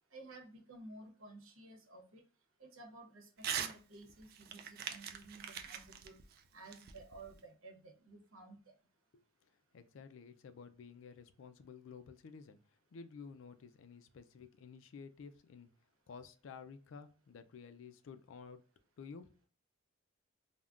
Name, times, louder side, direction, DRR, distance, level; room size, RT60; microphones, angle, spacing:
voice 1, 0.1-2.2 2.6-6.2 6.5-8.6, right 2 dB, 90° right, 2 dB, 0.9 m, -54 dB
Crumpling crinkling / Tearing, 3.4-3.8 4.1-7.4, right 8 dB, 45° right, 0.3 m, -42 dB
voice 2, 9.1-15.7 16.1-18.6 19.0-19.3, left 5 dB, 70° left, 9 dB, 0.4 m, -53 dB
3.5 x 2.1 x 2.4 m, 0.38 s
head